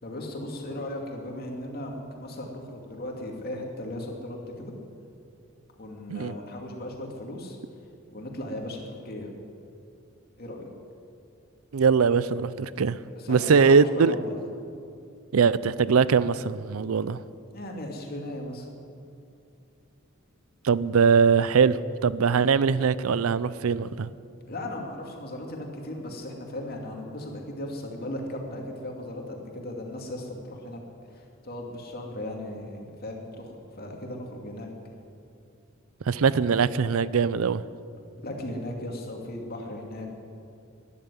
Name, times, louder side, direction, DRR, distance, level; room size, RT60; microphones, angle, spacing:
voice 1, 0.0-4.7 5.8-7.6 8.1-9.3 10.4-10.7 13.1-14.4 17.5-18.7 24.5-30.8 31.1-34.7 38.2-40.1, left 1 dB, 45° left, 1 dB, 2.5 m, -37 dB
voice 2, 11.7-13.0 13.3-14.1 15.3-17.2 20.6-24.1 36.1-37.6, right 5 dB, 85° right, 17 dB, 0.5 m, -21 dB
12.5 x 11.0 x 9.8 m, 2.5 s
head